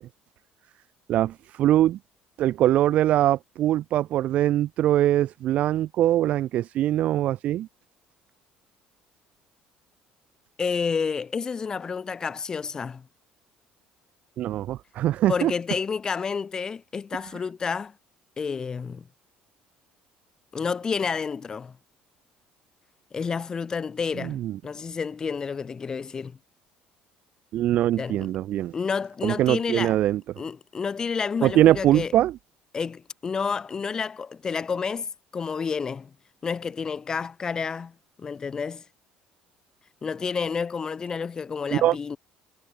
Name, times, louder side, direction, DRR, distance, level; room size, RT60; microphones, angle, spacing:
voice 1, 1.1-2.0 2.4-7.7 14.4-15.5 24.2-24.6 27.5-28.7 29.2-30.2 31.4-32.4 41.7-42.0, right 13 dB, 50° right, 0.4 m, -22 dB
voice 2, 10.6-13.1 15.3-17.9 18.4-19.0 20.5-21.7 23.1-26.4 28.0-28.3 28.7-30.0 30.4-32.1 32.7-36.1 36.4-38.8 40.0-42.2, left 5 dB, 25° left, 1.9 m, -30 dB
cardioid pair, 160°, 3 cm